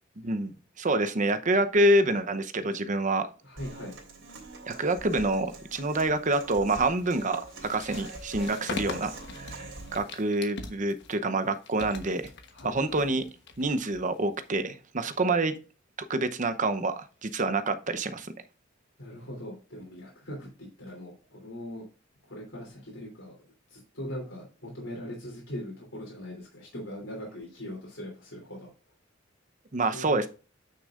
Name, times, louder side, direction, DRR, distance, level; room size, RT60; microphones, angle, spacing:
voice 1, 0.2-3.3 4.7-12.3 12.6-13.2 13.6-15.5 16.1-18.3 29.7-30.3, right 2 dB, 40° right, 0.8 m, -27 dB
voice 2, 3.4-4.0 12.5-13.2 19.0-21.8 22.3-23.3 23.7-28.7 29.9-30.3, equal, 80° left, 3.1 m, -40 dB
Human voice / Acoustic guitar, 3.6-10.0, right 2 dB, 70° right, 3.2 m, -44 dB
sound 1, 5.9-14.6, left 3 dB, 60° left, 1.2 m, -43 dB
9.7 x 6.4 x 2.5 m
head